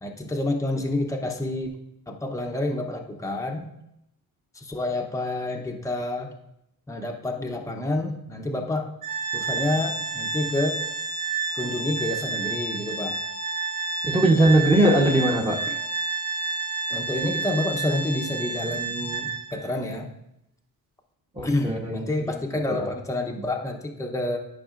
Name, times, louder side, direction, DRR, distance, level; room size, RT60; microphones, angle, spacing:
voice 1, 0.0-1.8 2.1-3.7 4.5-6.3 6.9-8.9 9.3-10.8 11.5-13.2 15.7-15.8 16.9-20.1 21.4-24.4, left 1 dB, 10° left, 2 dB, 0.8 m, -28 dB
Organ, 9.0-19.7, right 4 dB, 55° right, 2.7 m, -30 dB
voice 2, 14.0-15.6 21.3-22.3 22.8-22.9, right 1 dB, 15° right, 1 dB, 1.0 m, -20 dB
11.5 x 4.9 x 2.5 m, 0.81 s
cardioid pair, 80°, 38 cm